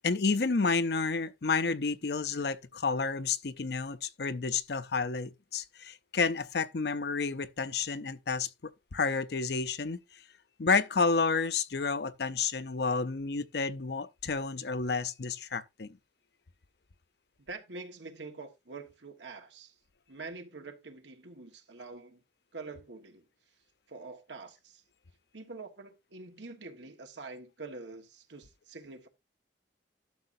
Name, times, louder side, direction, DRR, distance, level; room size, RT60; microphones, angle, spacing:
voice 1, 0.0-10.0 10.6-16.0, left 4 dB, 65° left, 0.7 m, -30 dB
voice 2, 17.5-19.7 20.1-22.2 22.5-23.2 23.9-24.8 25.3-29.1, right 3 dB, 85° right, 1.5 m, -45 dB
11.5 x 6.6 x 2.6 m
head